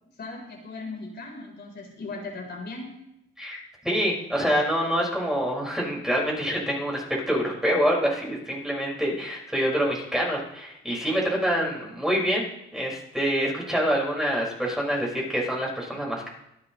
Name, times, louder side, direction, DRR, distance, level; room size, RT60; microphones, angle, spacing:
voice 1, 0.2-2.9, left 3 dB, 55° left, 0 dB, 4.2 m, -37 dB
voice 2, 3.4-12.5 12.7-16.3, equal, ahead, -3 dB, 5.4 m, -26 dB
25.5 x 10.0 x 3.2 m, 0.82 s
cardioid pair, 105°, 21 cm